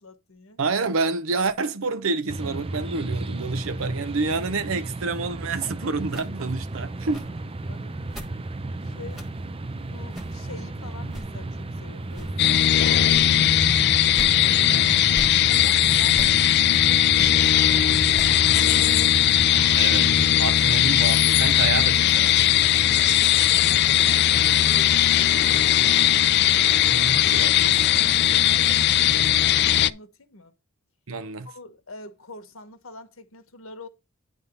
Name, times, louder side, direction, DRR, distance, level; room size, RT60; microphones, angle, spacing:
voice 1, 0.0-0.6 7.7-8.0 8.8-9.3 9.8-15.0 15.5-19.3 23.0-26.3 26.8-27.4 28.3-30.5 31.4-33.9, left 3 dB, 80° left, 1.4 m, -45 dB
voice 2, 0.6-7.3 14.7-15.0 19.7-22.8 24.7-25.0 26.7-28.3 31.1-31.5, right 4 dB, 75° right, 0.7 m, -29 dB
sound 1, 2.3-20.2, right 2 dB, 25° right, 0.5 m, -34 dB
sound 2, 6.1-6.3 7.1-7.3 8.1-8.3 9.1-9.3 10.1-10.4 11.1-11.3 12.1-12.3 13.1-13.4 14.1-14.3 15.1-15.4 16.1-16.3 17.1-17.3 18.1-18.4, equal, ahead, 1.3 m, -37 dB
sound 3, 12.4-29.9, left 11 dB, 55° left, 0.4 m, -19 dB
9.6 x 3.7 x 5.4 m
head